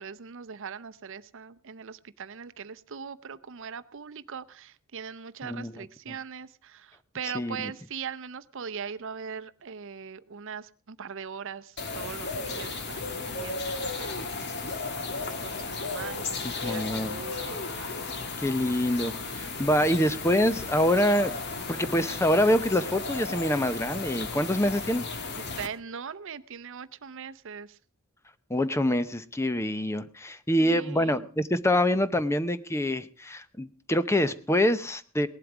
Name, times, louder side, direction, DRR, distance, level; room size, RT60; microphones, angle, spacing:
voice 1, 0.0-18.3 19.3-19.5 19.8-20.1 25.4-27.8 30.6-31.3, right 6 dB, 60° right, 14 dB, 0.6 m, -41 dB
sound 1, 11.8-25.7, left 3 dB, 50° left, 1.7 m, -34 dB
voice 2, 16.6-17.2 18.4-21.3 21.7-25.1 28.5-35.3, left 1 dB, 10° left, 13 dB, 0.7 m, -25 dB
18.5 x 11.5 x 4.9 m, 0.41 s
head